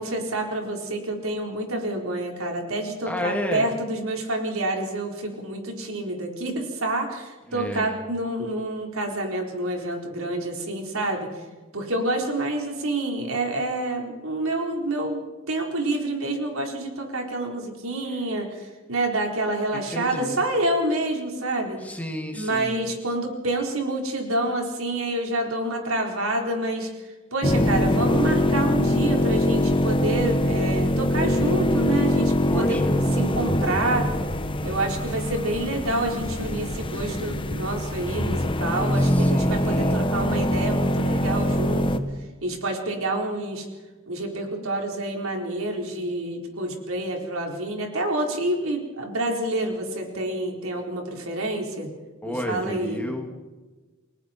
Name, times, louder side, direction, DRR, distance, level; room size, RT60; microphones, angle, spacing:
voice 1, 0.0-11.3 11.7-21.8 22.3-26.9 27.3-32.8 33.2-34.1 34.6-42.0 42.4-43.7 44.1-51.9 52.3-53.1, right 1 dB, 80° right, 2 dB, 4.2 m, -28 dB
voice 2, 3.1-3.7 7.5-8.0 19.7-20.4 21.8-22.8 32.5-32.9 39.0-40.1 52.2-53.3, left 1 dB, 5° left, 3 dB, 2.3 m, -32 dB
sound 1, 27.4-42.0, left 1 dB, 25° left, 1.1 m, -23 dB
30.0 x 19.5 x 4.4 m, 1.2 s
head